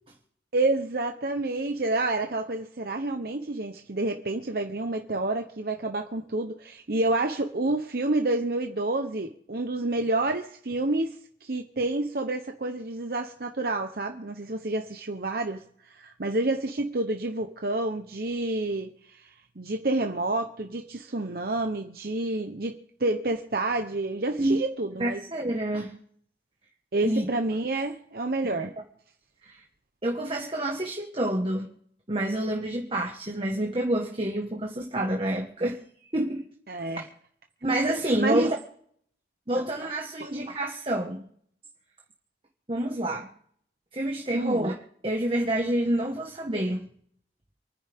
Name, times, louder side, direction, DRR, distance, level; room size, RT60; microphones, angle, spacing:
voice 1, 0.5-25.2 26.9-28.7 36.7-37.1 38.2-38.5 39.5-39.6 40.2-40.3 44.3-44.7, right 2 dB, 55° right, 0.9 m, -29 dB
voice 2, 25.0-25.9 27.0-27.2 29.4-29.6 30.0-31.7 32.1-35.8 36.1-36.5 37.6-38.5 39.5-41.2 42.7-43.3 43.9-44.8 45.0-46.9, right 1 dB, 30° right, 1.6 m, -28 dB
27.5 x 10.0 x 3.6 m
head